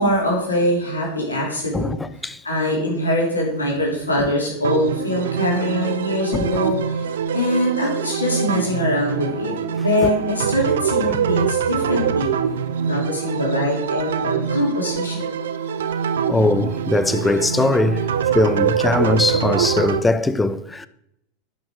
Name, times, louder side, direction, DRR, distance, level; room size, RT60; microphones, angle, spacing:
voice 1, 0.0-2.0 2.4-7.0 7.3-9.5 9.8-12.3 12.8-15.5, left 1 dB, 85° left, 3.3 m, -23 dB
voice 2, 1.7-2.4 4.2-4.3 6.3-6.5 10.0-10.1 16.3-20.9, left 2 dB, 10° left, 0.7 m, -21 dB
sound 1, 4.6-20.0, right 7 dB, 70° right, 0.7 m, -24 dB
11.0 x 6.2 x 6.2 m
figure-of-eight pair, 85°, 0 cm